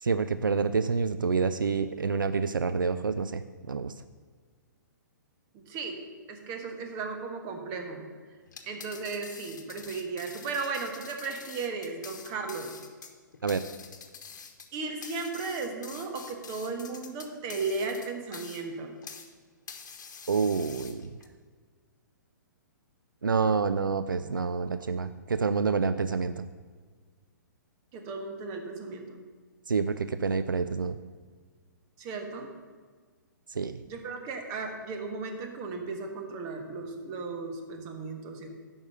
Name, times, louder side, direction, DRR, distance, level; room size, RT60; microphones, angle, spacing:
voice 1, 0.0-3.9 13.4-13.6 20.3-21.1 23.2-26.5 29.7-31.0 33.5-33.8, right 5 dB, 85° right, 12 dB, 0.4 m, -28 dB
voice 2, 5.5-6.0 6.3-8.0 8.7-12.7 14.7-19.0 27.9-29.2 32.0-32.5 33.9-38.5, right 4 dB, 30° right, 4 dB, 1.4 m, -35 dB
sound 1, 8.5-19.3 19.7-21.3, left 6 dB, 65° left, 1.1 m, -46 dB
9.4 x 5.5 x 6.6 m, 1.5 s
figure-of-eight pair, 125°, 11 cm